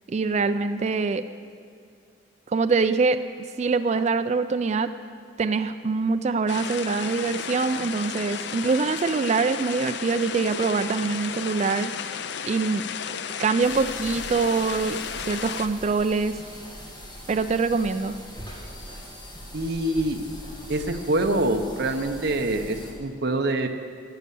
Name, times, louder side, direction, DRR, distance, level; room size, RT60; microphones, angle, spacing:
voice 1, 0.1-1.2 2.5-3.2 3.6-4.9 5.4-11.9 12.4-12.8 13.4-16.4 17.3-18.1, right 4 dB, 35° right, 10 dB, 0.3 m, -24 dB
sound 1, 6.5-15.7, left 7 dB, 60° left, 0.5 m, -33 dB
sound 2, 13.6-22.9, equal, 20° left, 2.1 m, -41 dB
voice 2, 19.5-20.2 20.7-23.7, right 1 dB, 55° right, 6 dB, 0.8 m, -25 dB
12.0 x 8.4 x 6.9 m, 2.4 s
head